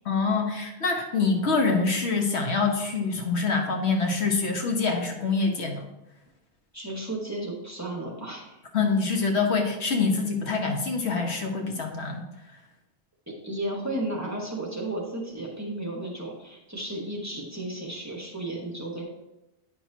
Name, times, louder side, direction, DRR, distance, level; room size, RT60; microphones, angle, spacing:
voice 1, 0.0-5.9 8.7-12.2, left 4 dB, 75° left, 2 dB, 1.3 m, -25 dB
voice 2, 6.7-8.6 13.3-19.0, right 1 dB, 15° right, -2 dB, 1.3 m, -34 dB
9.1 x 5.9 x 2.8 m, 0.95 s
omnidirectional pair, 1.1 m